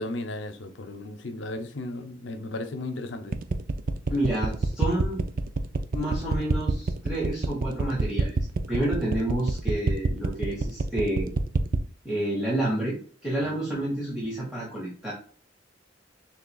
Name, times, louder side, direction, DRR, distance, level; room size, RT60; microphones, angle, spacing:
voice 1, 0.0-3.4 13.4-13.6, left 2 dB, 75° left, 0.7 m, -35 dB
sound 1, 3.3-11.9, right 3 dB, 50° right, 0.4 m, -26 dB
voice 2, 4.1-5.2 5.9-8.4 8.7-11.3 12.0-13.0 13.2-15.1, right 1 dB, 5° right, 1.4 m, -29 dB
6.5 x 3.2 x 2.3 m
head